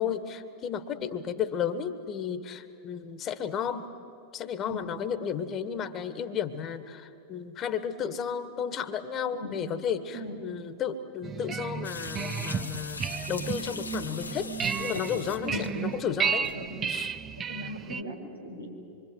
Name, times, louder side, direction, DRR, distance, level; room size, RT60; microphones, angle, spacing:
voice 1, 0.0-3.9 4.3-14.5 14.8-16.5 16.9-17.1, left 8 dB, 30° left, 12 dB, 1.8 m, -33 dB
sound 1, 11.2-18.0, right 7 dB, 25° right, 0.8 m, -33 dB
sound 2, 11.8-16.9, left 3 dB, 80° left, 1.6 m, -40 dB
voice 2, 17.5-18.7, equal, 90° right, -2 dB, 6.0 m, -39 dB
26.0 x 24.5 x 9.4 m, 2.6 s
figure-of-eight pair, 90°, 0 cm